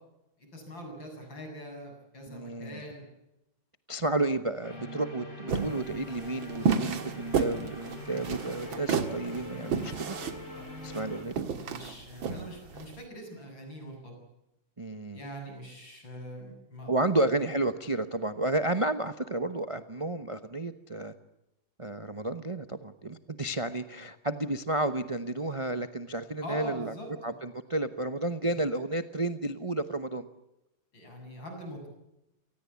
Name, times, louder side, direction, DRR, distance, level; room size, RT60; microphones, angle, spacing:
voice 1, 0.4-3.1 4.7-4.8 10.5-11.1 11.5-14.1 15.1-17.1 26.4-27.3 28.5-28.6 30.9-31.9, equal, 65° left, 3 dB, 8.4 m, -43 dB
voice 2, 2.3-2.8 3.9-10.2 10.8-11.3 14.8-15.2 16.9-21.1 21.8-26.9 27.2-30.3, right 2 dB, 30° right, 10 dB, 0.6 m, -31 dB
sound 1, 4.6-11.2, left 1 dB, 40° left, 6.6 m, -43 dB
sound 2, 5.5-12.9, right 6 dB, 70° right, 2.6 m, -31 dB
28.0 x 19.5 x 8.4 m, 0.90 s
omnidirectional pair, 2.3 m